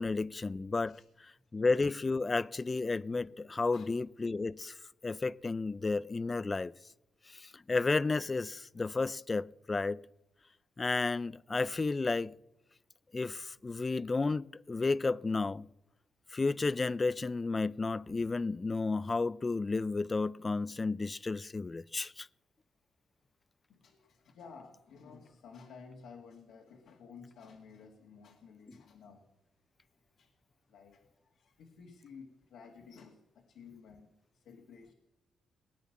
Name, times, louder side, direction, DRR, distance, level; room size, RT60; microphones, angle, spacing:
voice 1, 0.0-4.8 5.0-6.7 7.3-10.0 10.8-12.4 13.1-15.7 16.3-22.3 28.7-28.8, left 3 dB, 30° left, 0.5 m, -32 dB
voice 2, 23.7-29.3 30.2-30.3 30.7-31.0 31.3-34.9, left 5 dB, 85° left, 2.1 m, -54 dB
20.0 x 9.6 x 7.2 m
cardioid pair, 70°, 0 cm